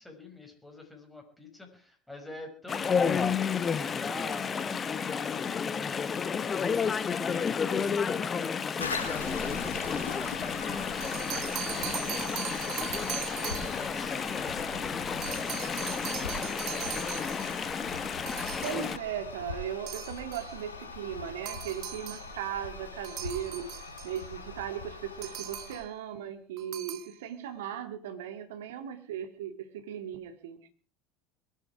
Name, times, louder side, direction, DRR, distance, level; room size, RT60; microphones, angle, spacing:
voice 1, 0.0-12.3 13.1-17.8, left 2 dB, 5° left, 1 dB, 5.6 m, -47 dB
Chatter / Stream, 2.7-19.0, left 6 dB, 30° left, 1.1 m, -31 dB
Toilet flush, 8.8-25.8, left 3 dB, 85° left, 3.8 m, -42 dB
sound 1, 10.8-13.9 15.2-17.7 18.3-19.0 19.9-20.6 21.5-22.3 23.0-24.3 25.2-25.9 26.6-27.1, right 12 dB, 55° right, 1.8 m, -40 dB
voice 2, 18.6-23.7 24.0-30.7, right 9 dB, 70° right, 9 dB, 2.1 m, -37 dB
22.0 x 11.5 x 4.8 m, 0.41 s
hypercardioid pair, 70°, 0 cm